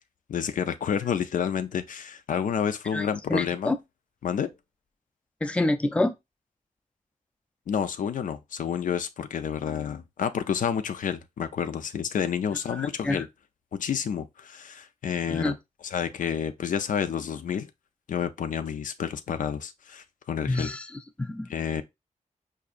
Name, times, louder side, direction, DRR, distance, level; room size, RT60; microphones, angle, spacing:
voice 1, 0.3-3.7 4.2-4.5 7.7-13.3 13.7-15.6 15.8-17.7 18.1-20.7 21.5-21.8, left 8 dB, 75° left, 0.4 m, -29 dB
voice 2, 2.9-3.8 5.4-6.1 12.8-13.2 15.3-15.5 20.5-20.9 21.2-21.5, left 2 dB, 10° left, 0.4 m, -27 dB
4.8 x 2.6 x 2.4 m
wide cardioid pair, 125°, 14 cm